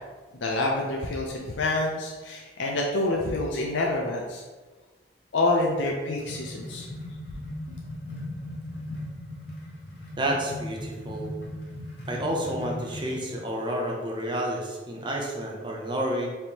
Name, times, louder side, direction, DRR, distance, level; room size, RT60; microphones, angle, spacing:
voice 1, 0.4-4.4 5.3-6.9, left 2 dB, 80° left, -1 dB, 0.5 m, -27 dB
sound 1, 5.7-13.3, left 1 dB, 65° left, 1.1 m, -38 dB
voice 2, 10.2-11.4 12.1-16.3, right 1 dB, 25° right, 0 dB, 0.7 m, -30 dB
4.4 x 3.3 x 2.9 m, 1.3 s
head